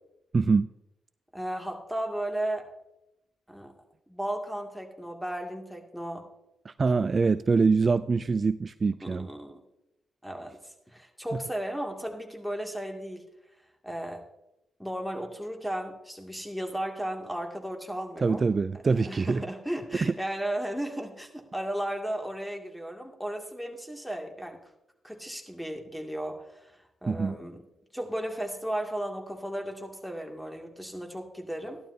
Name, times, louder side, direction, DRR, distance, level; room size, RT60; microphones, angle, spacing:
voice 1, 0.3-0.7 6.7-9.3 18.2-19.4 20.0-20.1 27.1-27.4, right 4 dB, 40° right, 15 dB, 0.3 m, -24 dB
voice 2, 1.3-2.7 3.5-3.7 4.1-6.3 9.0-9.6 10.2-13.2 13.8-14.2 14.8-18.4 18.9-24.6 25.0-27.6 27.9-31.8, right 1 dB, ahead, 2 dB, 2.5 m, -35 dB
15.0 x 11.5 x 2.8 m, 0.88 s
hypercardioid pair, 40°, 0 cm